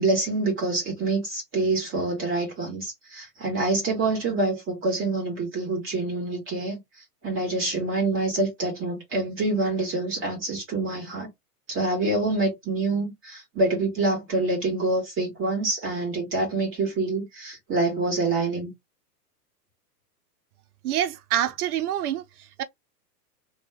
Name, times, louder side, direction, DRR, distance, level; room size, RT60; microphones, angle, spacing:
voice 1, 0.0-6.8 7.2-11.3 11.7-18.7, right 2 dB, 25° right, 1.8 m, -26 dB
voice 2, 20.8-22.2 22.6-22.7, right 11 dB, 65° right, 0.8 m, -26 dB
3.0 x 2.3 x 3.1 m
hypercardioid pair, 135°, 48 cm